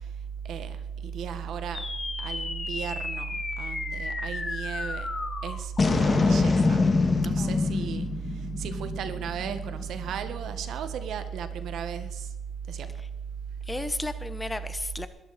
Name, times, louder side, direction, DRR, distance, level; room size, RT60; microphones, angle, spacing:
voice 1, 0.4-1.8 2.2-5.1 5.4-6.8 7.2-12.3 12.7-12.9, right 7 dB, 75° right, 10 dB, 1.5 m, -34 dB
sound 1, 1.7-10.3, left 3 dB, 30° left, 2.1 m, -27 dB
voice 2, 7.4-7.7 13.6-15.1, left 2 dB, 15° left, 11 dB, 1.1 m, -34 dB
21.0 x 12.5 x 4.3 m, 0.96 s
cardioid pair, 90°, 0 cm